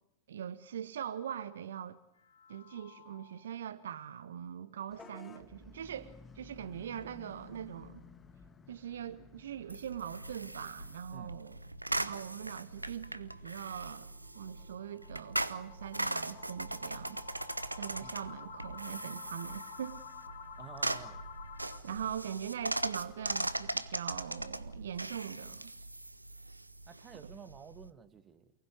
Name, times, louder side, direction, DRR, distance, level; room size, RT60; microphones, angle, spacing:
voice 1, 0.3-2.0 2.5-8.0 8.7-11.6 12.0-14.1 14.3-17.2 17.8-20.1 21.8-25.7 27.2-27.3, right 9 dB, 65° right, 1.3 m, -42 dB
sound 1, 2.2-3.6 4.0-4.1 4.5-4.6 5.1-5.2 10.0-21.8, left 6 dB, 65° left, 4.2 m, -52 dB
Vehicle horn car horn honking / Bus, 4.9-11.0, left 4 dB, 20° left, 1.9 m, -55 dB
sound 2, 9.7-27.9, right 2 dB, 85° right, 1.1 m, -40 dB
voice 2, 20.6-21.3 26.9-28.5, right 7 dB, 25° right, 1.9 m, -51 dB
29.0 x 20.0 x 9.7 m
figure-of-eight pair, 90°, 0 cm